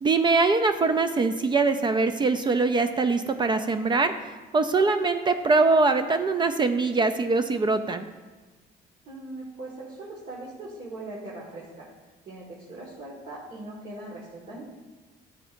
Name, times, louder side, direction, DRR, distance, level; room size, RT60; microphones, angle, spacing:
voice 1, 0.0-4.1 4.5-8.1, right 3 dB, 25° right, 9 dB, 0.4 m, -23 dB
voice 2, 9.0-11.9 12.2-14.6, right 2 dB, 50° right, -5 dB, 1.7 m, -40 dB
9.9 x 7.0 x 2.6 m, 1.3 s
cardioid pair, 110°, 17 cm